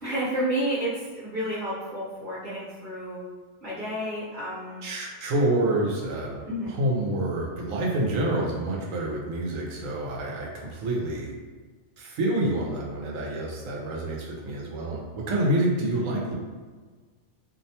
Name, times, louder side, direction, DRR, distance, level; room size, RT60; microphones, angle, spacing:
voice 1, 0.0-3.2 3.6-4.8 6.5-6.7, right 1 dB, 40° right, -11 dB, 0.9 m, -30 dB
voice 2, 4.8-11.3 12.0-16.3, right 1 dB, 90° right, -3 dB, 1.0 m, -27 dB
2.7 x 2.1 x 2.7 m, 1.4 s
omnidirectional pair, 1.3 m